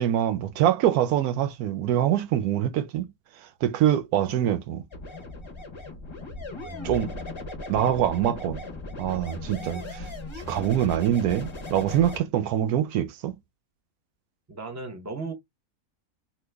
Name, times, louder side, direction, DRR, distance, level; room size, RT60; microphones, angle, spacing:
voice 1, 0.0-3.1 3.4-4.8 6.8-7.1 7.7-8.6 9.0-10.1 10.3-13.3, right 11 dB, 80° right, 1.1 m, -24 dB
sound 1, 4.9-12.2, left 2 dB, 25° left, 0.7 m, -37 dB
voice 2, 14.5-15.3, right 3 dB, 15° right, 0.6 m, -36 dB
3.0 x 2.3 x 3.3 m
omnidirectional pair, 1.6 m